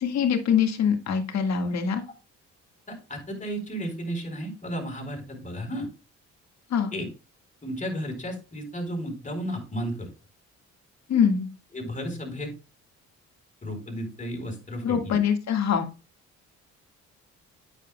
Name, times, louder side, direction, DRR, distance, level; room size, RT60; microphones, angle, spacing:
voice 1, 0.0-2.0 6.7-6.9 11.1-11.5 14.8-15.9, left 7 dB, 65° left, 6 dB, 1.9 m, -24 dB
voice 2, 2.9-5.9 6.9-7.1 7.6-10.1 11.7-12.5 13.6-15.2, equal, 25° left, 2 dB, 4.2 m, -33 dB
9.2 x 8.3 x 2.3 m, 0.30 s
cardioid pair, 90°, 30 cm